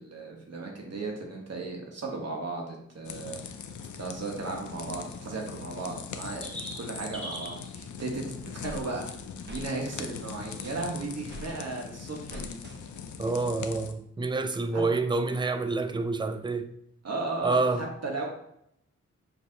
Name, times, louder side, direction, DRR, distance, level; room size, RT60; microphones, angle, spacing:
voice 1, 0.0-3.4 4.0-6.5 6.8-8.2 8.5-9.0 9.5-12.6 14.7-14.8 17.0-18.3, right 3 dB, 60° right, 1.1 m, -35 dB
sound 1, 3.0-13.9, left 7 dB, 85° left, 0.4 m, -41 dB
sound 2, 4.0-4.1 4.9-7.7 11.5-11.7 12.3-12.4 13.5-13.6, equal, 5° left, 1.1 m, -42 dB
sound 3, 8.0-8.8 9.5-9.7 10.0-11.5 12.3-13.1, right 1 dB, 40° right, 0.7 m, -45 dB
voice 2, 13.2-16.7 17.4-17.9, right 3 dB, 15° right, 0.3 m, -28 dB
5.8 x 2.7 x 2.7 m
wide cardioid pair, 90°, 29 cm